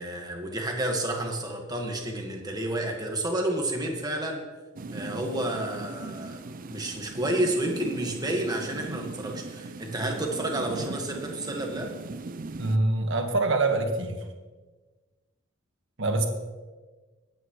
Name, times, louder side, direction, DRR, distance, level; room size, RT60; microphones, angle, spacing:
voice 1, 0.0-4.4 4.9-11.9, right 1 dB, 20° right, 2 dB, 1.6 m, -30 dB
sound 1, 4.8-12.8, right 3 dB, 40° right, 0.5 m, -39 dB
voice 2, 12.6-14.2 16.0-16.3, right 2 dB, 65° right, 4 dB, 1.5 m, -25 dB
21.0 x 9.1 x 3.2 m, 1.3 s
head